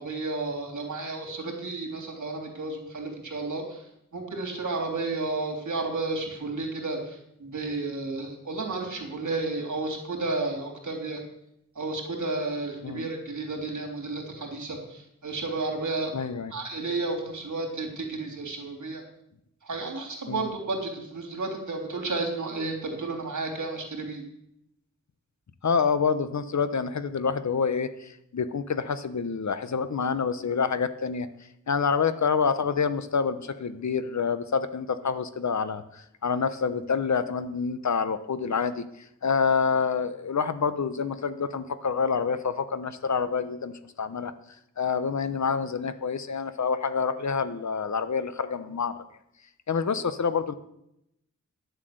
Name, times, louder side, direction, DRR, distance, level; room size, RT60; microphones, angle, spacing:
voice 1, 0.0-3.6 4.1-7.0 7.4-11.2 11.8-19.0 19.7-24.2, right 3 dB, 65° right, 1 dB, 3.4 m, -32 dB
voice 2, 16.1-16.5 20.3-20.5 25.6-31.3 31.7-44.3 44.8-49.0 49.7-50.5, left 5 dB, 60° left, 12 dB, 1.0 m, -27 dB
11.0 x 7.7 x 7.9 m, 0.79 s
wide cardioid pair, 100°, 32 cm